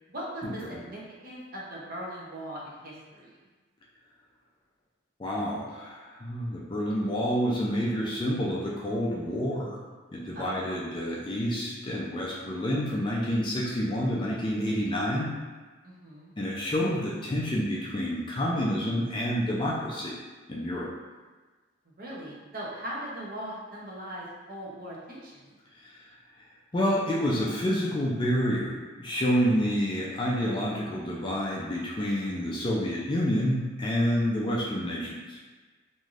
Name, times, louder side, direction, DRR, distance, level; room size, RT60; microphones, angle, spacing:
voice 1, 0.1-3.3 10.3-10.7 15.8-16.3 22.0-25.6, right 1 dB, 45° right, -4 dB, 0.6 m, -39 dB
voice 2, 5.2-9.8 10.1-15.3 16.4-20.1 20.5-20.9 26.7-35.4, equal, 20° left, -4 dB, 0.3 m, -28 dB
3.2 x 2.6 x 2.4 m, 1.3 s
head